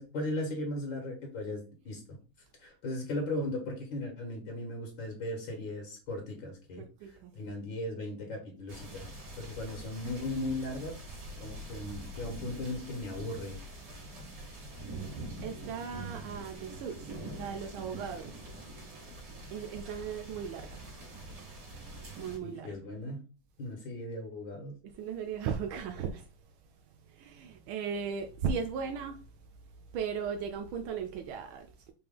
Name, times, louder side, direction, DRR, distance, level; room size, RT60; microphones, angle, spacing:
voice 1, 0.0-2.2 2.6-6.8 7.4-9.1 9.4-11.0 11.4-13.6 22.4-23.2 23.6-24.7, left 1 dB, 70° left, 1.9 m, -37 dB
voice 2, 6.8-7.3 14.9-18.5 18.9-20.9 21.8-21.9 22.2-22.8 24.8-26.6 26.9-31.9, right 6 dB, 85° right, 1.4 m, -38 dB
sound 1, 8.7-22.4, right 1 dB, 60° right, 2.7 m, -45 dB
5.1 x 2.9 x 3.6 m
omnidirectional pair, 2.2 m